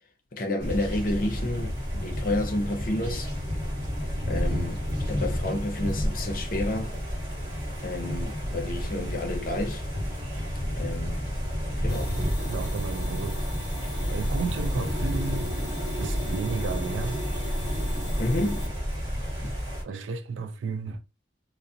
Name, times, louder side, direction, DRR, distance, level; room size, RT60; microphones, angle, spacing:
voice 1, 0.3-3.3 4.3-7.0 7.8-9.8 10.8-11.2 11.8-12.1 18.2-18.7, left 1 dB, 45° left, 0.6 m, -30 dB
sound 1, 0.6-19.8, equal, 30° right, 1.1 m, -30 dB
sound 2, 11.9-18.7, equal, 15° left, 1.0 m, -37 dB
voice 2, 12.2-13.7 14.1-15.5 16.0-17.2 19.3-19.5 19.8-21.0, right 5 dB, 85° right, 0.3 m, -33 dB
2.3 x 2.0 x 2.6 m
head